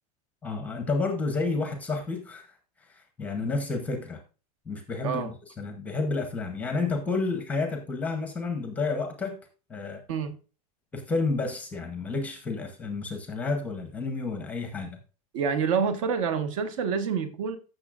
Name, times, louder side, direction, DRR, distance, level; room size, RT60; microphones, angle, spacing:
voice 1, 0.4-2.5 2.9-4.2 4.7-9.4 9.7-10.0 10.9-15.0, left 3 dB, 5° left, 0.7 m, -30 dB
voice 2, 15.3-17.6, right 6 dB, 55° right, 1.3 m, -27 dB
14.5 x 6.4 x 2.4 m
supercardioid pair, 180°, 20 cm